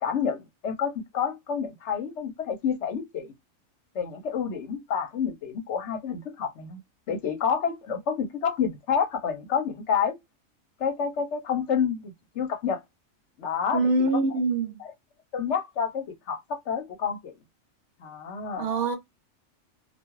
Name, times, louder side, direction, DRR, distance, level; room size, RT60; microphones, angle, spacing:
voice 1, 0.0-3.3 3.9-6.8 7.1-10.2 10.8-12.8 13.4-14.1 15.3-17.3 18.0-18.7, left 7 dB, 65° left, 0.9 m, -29 dB
voice 2, 13.7-14.8 18.6-19.0, right 2 dB, 65° right, 1.0 m, -24 dB
2.4 x 2.3 x 2.9 m
omnidirectional pair, 1.4 m